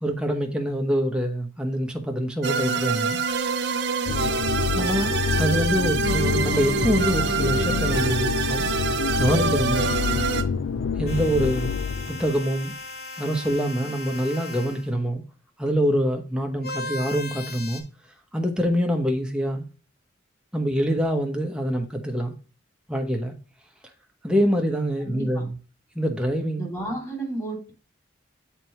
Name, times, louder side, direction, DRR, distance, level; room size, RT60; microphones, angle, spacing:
voice 1, 0.0-3.2 4.7-8.7 9.1-9.9 11.0-11.7 12.1-12.7 13.2-15.2 15.6-17.8 18.3-19.7 20.5-22.3 22.9-23.3 24.2-25.6 25.9-26.6, equal, 5° right, 0.9 m, -25 dB
sound 1, 2.4-10.4, right 5 dB, 60° right, 0.6 m, -26 dB
sound 2, 4.1-12.4, left 5 dB, 80° left, 0.4 m, -27 dB
sound 3, 11.1-14.9 16.6-17.8, left 2 dB, 50° left, 1.3 m, -37 dB
voice 2, 25.0-25.4 26.6-27.7, right 2 dB, 15° left, 2.6 m, -32 dB
7.5 x 4.5 x 3.0 m
head